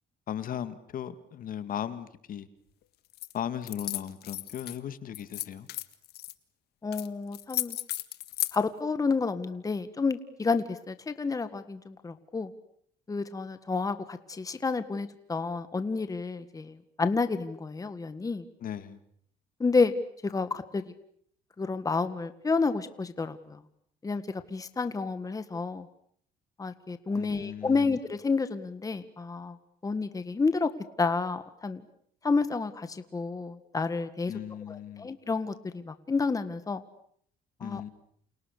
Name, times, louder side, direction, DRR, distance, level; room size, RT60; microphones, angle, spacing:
voice 1, 0.3-2.5 3.3-5.7 18.6-19.0 27.2-27.8 34.3-35.1 37.6-37.9, left 9 dB, 55° left, 2.2 m, -37 dB
sound 1, 3.1-3.3 3.6-4.8 5.1-6.3 6.9-7.1 7.3-8.6, left 15 dB, 75° left, 1.7 m, -34 dB
voice 2, 6.8-7.8 8.5-12.5 13.1-18.5 19.6-19.9 20.2-20.8 21.6-23.6 24.0-25.9 26.6-29.6 29.8-30.7 31.0-31.8 32.2-34.3 34.7-36.8 37.6-37.8, left 4 dB, 20° left, 1.8 m, -30 dB
29.5 x 29.0 x 6.8 m
cardioid pair, 110°, 17 cm